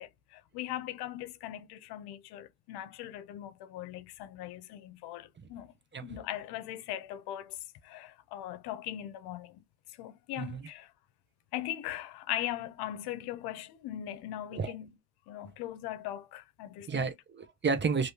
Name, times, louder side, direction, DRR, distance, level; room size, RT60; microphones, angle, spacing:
voice 1, 0.0-5.7 6.0-7.6 7.8-9.6 10.0-10.9 11.5-14.9 15.3-17.1, left 13 dB, 80° left, 0.7 m, -40 dB
voice 2, 10.4-10.7 14.5-14.7 16.9-18.1, right 5 dB, 30° right, 0.8 m, -31 dB
3.2 x 2.7 x 2.8 m
cardioid pair, 90°, 38 cm